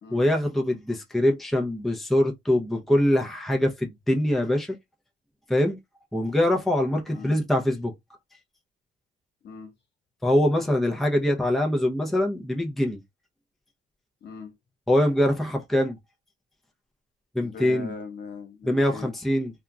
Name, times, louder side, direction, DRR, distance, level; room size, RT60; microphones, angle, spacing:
voice 1, 0.1-4.7 5.5-5.8 6.1-7.9 10.2-13.0 14.9-16.0 17.3-17.9 18.7-19.5, left 1 dB, ahead, 0.6 m, -23 dB
voice 2, 14.2-14.5 17.4-19.1, left 5 dB, 60° left, 1.2 m, -40 dB
2.8 x 2.4 x 2.3 m
cardioid pair, 90°, 20 cm